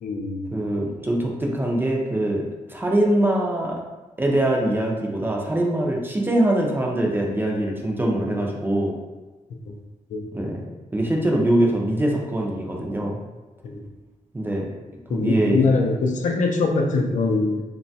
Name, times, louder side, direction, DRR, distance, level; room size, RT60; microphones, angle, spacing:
voice 1, 0.0-0.5 9.7-9.8 10.1-10.4 13.6-13.8 15.1-17.6, left 3 dB, 70° left, 3 dB, 0.4 m, -23 dB
voice 2, 0.5-2.4 2.7-3.8 4.2-8.9 10.3-10.6 10.9-13.2 14.3-14.7 15.1-15.6, right 1 dB, 15° right, -1 dB, 0.3 m, -23 dB
3.0 x 2.2 x 2.6 m, 1.2 s
wide cardioid pair, 145°, 13 cm